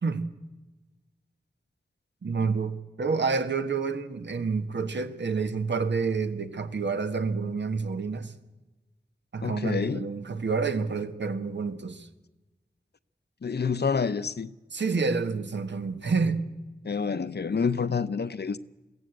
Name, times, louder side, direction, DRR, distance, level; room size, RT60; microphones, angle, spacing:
voice 1, 2.2-8.3 9.3-12.1 14.7-16.5, right 4 dB, 90° right, 1.4 m, -28 dB
voice 2, 9.4-10.1 13.4-14.5 16.8-18.6, left 5 dB, 70° left, 0.7 m, -28 dB
22.0 x 16.0 x 7.9 m
wide cardioid pair, 65°, 18 cm